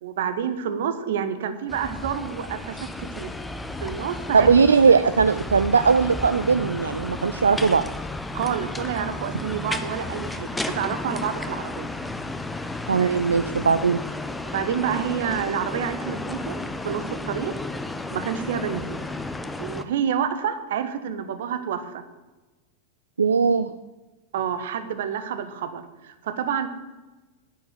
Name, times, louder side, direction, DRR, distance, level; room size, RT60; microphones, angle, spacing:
voice 1, 0.0-3.3 3.8-4.5 8.3-10.5 10.7-12.0 14.4-17.5 18.1-19.1 19.6-22.0 24.3-26.7, right 8 dB, 55° right, 10 dB, 1.3 m, -28 dB
sound 1, 1.7-19.8, left 2 dB, 5° left, 0.9 m, -33 dB
voice 2, 4.3-7.9 12.9-14.0 23.2-23.7, right 5 dB, 75° right, 12 dB, 0.5 m, -19 dB
9.2 x 9.2 x 9.1 m, 1.2 s
figure-of-eight pair, 90°, 0 cm